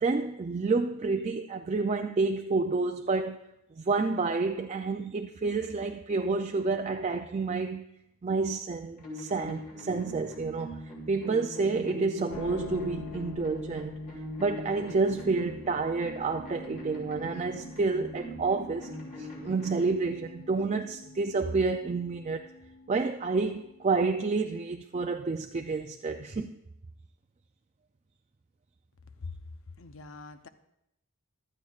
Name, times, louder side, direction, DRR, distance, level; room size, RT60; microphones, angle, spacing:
voice 1, 0.0-3.4 3.8-7.8 8.2-14.0 14.4-18.9 19.2-22.5 22.9-26.6, right 4 dB, 30° right, 0.3 m, -29 dB
sound 1, 9.0-19.9, left 1 dB, 40° left, 3.6 m, -42 dB
sound 2, 12.3-24.6, left 3 dB, 85° left, 0.9 m, -48 dB
voice 2, 29.8-30.5, left 4 dB, 65° left, 0.7 m, -43 dB
15.5 x 12.0 x 2.4 m
head